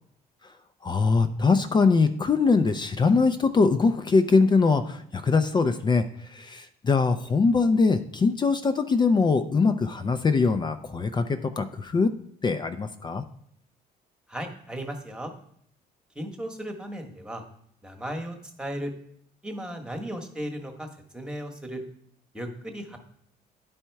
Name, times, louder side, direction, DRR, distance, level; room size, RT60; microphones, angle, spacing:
voice 1, 0.8-12.1 12.4-13.2, left 4 dB, 25° left, 9 dB, 0.5 m, -22 dB
voice 2, 14.3-15.3 16.1-17.4 17.8-18.9 19.4-20.9 21.1-21.8 22.3-23.0, equal, 5° right, 4 dB, 1.2 m, -35 dB
10.0 x 4.3 x 4.6 m, 0.67 s
cardioid pair, 110°, 17 cm